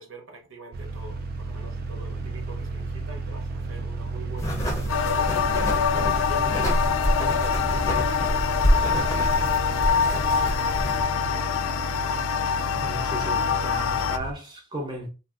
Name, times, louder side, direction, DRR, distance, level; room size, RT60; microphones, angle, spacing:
voice 1, 0.0-5.3 6.0-9.2 9.6-11.1, right 3 dB, 70° right, 0.9 m, -44 dB
sound 1, 0.7-14.3, right 3 dB, 45° right, 0.4 m, -33 dB
sound 2, 4.4-11.0, equal, 15° left, 0.6 m, -27 dB
sound 3, 4.9-14.2, left 7 dB, 85° left, 0.3 m, -25 dB
voice 2, 12.8-15.1, right 1 dB, 20° right, 0.7 m, -35 dB
3.2 x 2.6 x 2.4 m
head